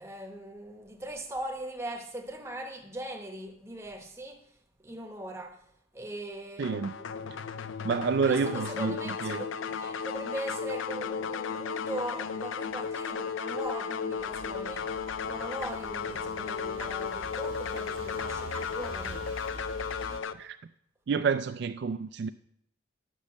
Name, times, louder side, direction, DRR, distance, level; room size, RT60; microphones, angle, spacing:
voice 1, 0.0-5.7 5.9-7.9 8.3-19.3, right 1 dB, 15° right, 0.9 m, -40 dB
sound 1, 6.6-20.3, left 6 dB, 70° left, 0.4 m, -35 dB
voice 2, 6.6-6.9 7.8-9.0 9.2-9.4 20.4-20.6 21.1-22.3, right 5 dB, 55° right, 0.3 m, -28 dB
sound 2, 14.2-20.2, right 2 dB, 80° right, 1.1 m, -45 dB
10.5 x 5.3 x 7.2 m
head